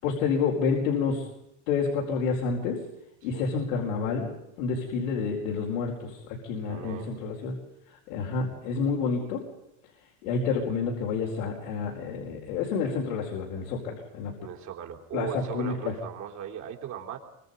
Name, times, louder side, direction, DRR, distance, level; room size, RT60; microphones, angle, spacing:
voice 1, 0.0-1.3 1.7-2.8 3.2-4.3 4.6-7.6 8.1-9.4 10.2-14.3 15.1-15.9, left 5 dB, 85° left, -2 dB, 4.8 m, -29 dB
voice 2, 6.6-7.2 14.4-17.2, right 9 dB, 50° right, 3 dB, 4.0 m, -38 dB
25.5 x 25.0 x 5.4 m, 0.83 s
supercardioid pair, 120°, 38 cm